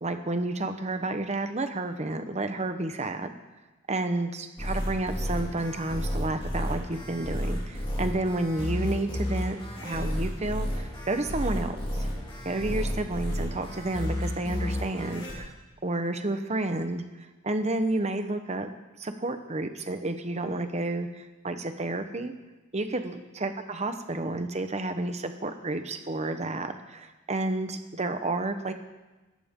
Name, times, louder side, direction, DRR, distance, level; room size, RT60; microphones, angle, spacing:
voice 1, 0.0-3.3 3.9-12.1 12.4-15.5 15.8-17.0 17.4-18.7 19.0-22.3 22.7-28.7, right 2 dB, 35° right, 8 dB, 1.1 m, -31 dB
sound 1, 4.6-15.3, equal, 25° left, 4.2 m, -32 dB
21.0 x 13.5 x 3.8 m, 1.2 s
head